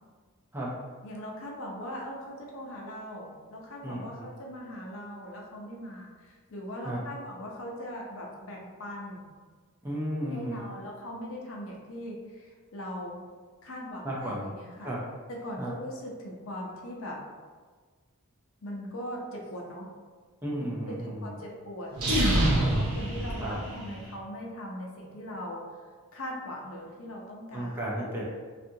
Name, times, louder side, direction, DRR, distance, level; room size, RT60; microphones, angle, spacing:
voice 1, 1.0-9.2 10.3-13.2 13.6-14.9 15.3-17.2 18.6-19.9 20.9-25.6 26.1-27.8, equal, 65° left, -1 dB, 0.5 m, -40 dB
voice 2, 3.8-4.3 6.8-7.0 9.8-10.6 14.0-14.5 14.8-15.0 15.6-15.7 20.4-21.3 23.4-23.6 27.5-28.2, right 1 dB, 10° right, -5 dB, 0.4 m, -33 dB
sound 1, 21.9-24.1, right 1 dB, 80° right, 0.6 m, -26 dB
2.7 x 2.4 x 2.6 m, 1.5 s
head